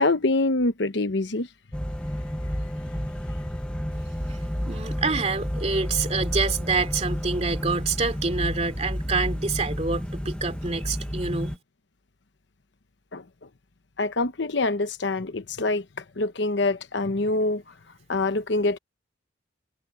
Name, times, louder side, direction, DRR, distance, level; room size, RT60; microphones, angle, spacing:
voice 1, 0.0-1.5 13.1-13.2 14.0-17.6 18.1-18.8, left 2 dB, 60° left, 0.9 m, -25 dB
sound 1, 1.7-11.6, equal, 5° left, 1.0 m, -30 dB
voice 2, 4.7-11.6, right 4 dB, 35° right, 2.8 m, -27 dB
head